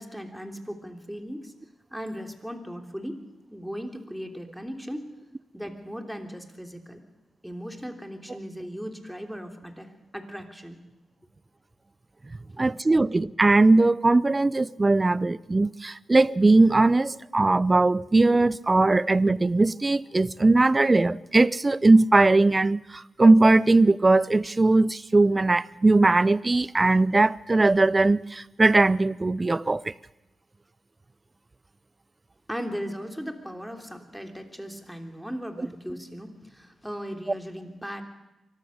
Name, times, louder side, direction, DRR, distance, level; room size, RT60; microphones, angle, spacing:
voice 1, 0.0-1.5 1.9-3.2 3.5-5.0 5.5-7.0 7.4-10.8 12.9-13.0 32.5-38.0, equal, ahead, 3.3 m, -37 dB
voice 2, 12.6-29.9, right 2 dB, 30° right, 0.6 m, -20 dB
24.0 x 14.0 x 8.0 m
cardioid pair, 55°, 0 cm